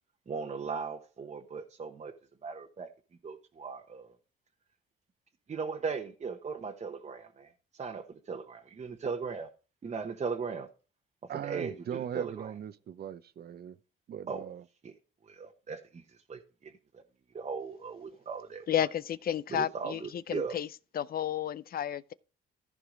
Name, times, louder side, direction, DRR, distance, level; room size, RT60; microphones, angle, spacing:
voice 1, 0.3-2.1 2.4-2.9 3.2-4.1 5.5-9.5 9.8-10.7 11.3-12.5 14.3-14.4 14.8-14.9 15.2-16.0 16.3-17.0 17.3-18.7 19.5-20.6, right 5 dB, 35° right, 1.0 m, -38 dB
voice 2, 11.3-13.8 14.1-14.6, right 9 dB, 55° right, 0.7 m, -39 dB
voice 3, 18.7-20.7 20.9-22.1, left 10 dB, 50° left, 0.5 m, -32 dB
14.5 x 4.8 x 3.8 m
cardioid pair, 90°, 20 cm